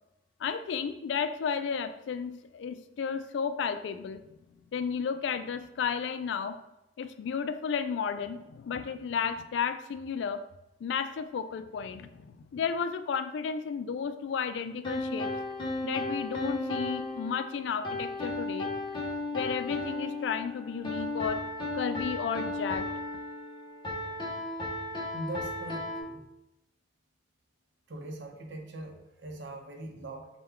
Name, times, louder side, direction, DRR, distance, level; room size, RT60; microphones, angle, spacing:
voice 1, 0.4-4.2 4.7-6.6 7.0-10.4 10.8-15.3 15.8-18.7 19.3-21.5 21.7-22.9, left 6 dB, 85° left, 10 dB, 0.3 m, -33 dB
sound 1, 14.8-26.0, left 2 dB, 25° left, 0.7 m, -35 dB
voice 2, 25.1-26.2 27.9-30.3, right 1 dB, 90° right, 3 dB, 0.7 m, -41 dB
3.6 x 2.2 x 4.4 m, 0.91 s
head